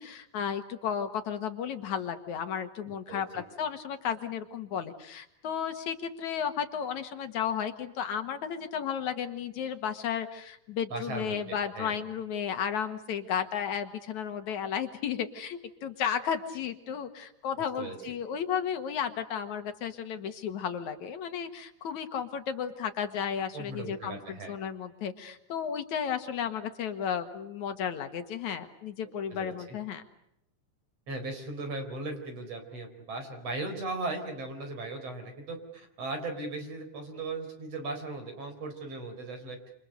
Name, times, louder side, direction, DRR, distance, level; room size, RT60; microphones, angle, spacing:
voice 1, 0.0-30.0, left 8 dB, 70° left, 8 dB, 2.9 m, -33 dB
voice 2, 2.9-3.2 10.9-11.9 17.8-18.0 23.5-24.6 29.3-29.8 31.1-39.6, right 2 dB, 55° right, 5 dB, 5.4 m, -37 dB
28.0 x 28.0 x 6.7 m, 0.78 s
omnidirectional pair, 3.5 m